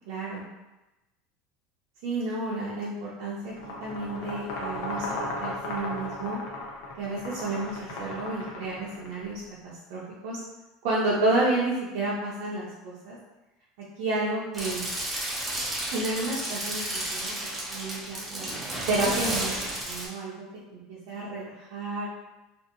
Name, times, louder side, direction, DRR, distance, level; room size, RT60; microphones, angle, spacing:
voice 1, 0.1-0.4 2.0-3.5 3.8-6.4 7.0-10.4 10.8-13.2 14.0-14.8 15.9-17.3 17.7-20.3 20.7-22.1, right 2 dB, 60° right, -7 dB, 0.5 m, -31 dB
sound 1, 3.5-9.2, left 2 dB, 60° left, 0.6 m, -35 dB
sound 2, 14.5-20.1, right 1 dB, 10° right, 0.5 m, -32 dB
2.7 x 2.5 x 2.5 m, 1.0 s
cardioid pair, 175°, 0 cm